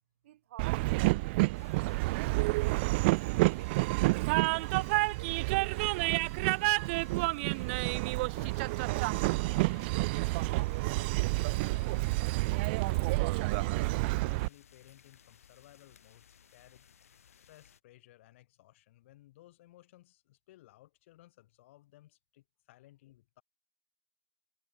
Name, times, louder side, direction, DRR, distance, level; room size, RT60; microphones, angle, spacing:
voice 1, 0.2-1.7 2.1-6.3, right 13 dB, 65° right, 3.2 m, -54 dB
Train, 0.6-14.5, right 24 dB, 50° right, 0.4 m, -29 dB
sound 1, 1.5-17.8, left 8 dB, 85° left, 5.9 m, -61 dB
voice 2, 8.3-10.9 11.3-12.4 12.7-16.9 17.3-23.4, left 16 dB, 60° left, 7.3 m, -59 dB
hypercardioid pair, 125°, 8 cm